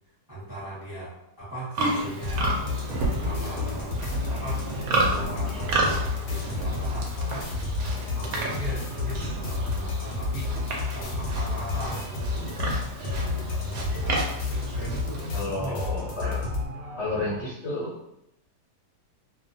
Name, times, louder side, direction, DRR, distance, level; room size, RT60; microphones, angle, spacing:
voice 1, 0.3-2.6 3.2-4.7 4.9-7.5 7.9-10.5 10.9-12.4 13.0-15.9, right 2 dB, 20° right, -9 dB, 0.6 m, -39 dB
Livestock farm animals working animals, 1.7-15.4, right 2 dB, 70° right, 0.9 m, -32 dB
sound 1, 1.8-17.4, equal, 90° right, 1.2 m, -40 dB
sound 2, 2.2-16.7, left 4 dB, 85° left, 1.2 m, -31 dB
voice 2, 15.3-16.4 16.9-18.0, left 2 dB, 60° left, -8 dB, 0.7 m, -31 dB
2.6 x 2.2 x 2.6 m, 0.82 s
omnidirectional pair, 1.8 m